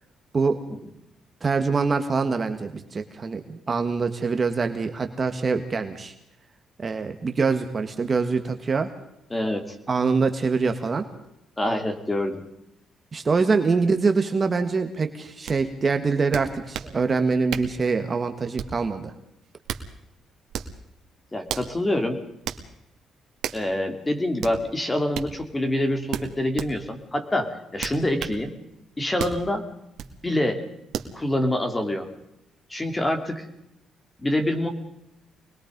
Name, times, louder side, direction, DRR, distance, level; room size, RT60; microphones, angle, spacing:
voice 1, 1.4-6.1 6.8-8.9 9.9-11.0 13.1-19.1, right 4 dB, 30° right, 7 dB, 1.7 m, -24 dB
voice 2, 9.3-9.7 11.6-12.4 21.3-22.2 23.5-28.6 29.0-29.6 30.2-30.6 31.1-32.1 32.7-33.4 34.2-34.7, left 1 dB, 15° left, 6 dB, 3.1 m, -26 dB
sound 1, 15.5-15.6 16.3-16.9 17.5-17.8 18.6-18.9 19.4-19.9 20.5-20.8 21.5-21.7 22.5-22.6 23.4-23.7 24.4-24.6 25.1-25.3 26.1-26.7 27.8-28.4 29.2-29.4 30.0-30.1 30.9-31.1, right 9 dB, 75° right, 2.1 m, -32 dB
24.5 x 21.0 x 5.3 m, 0.82 s
cardioid pair, 140°, 0 cm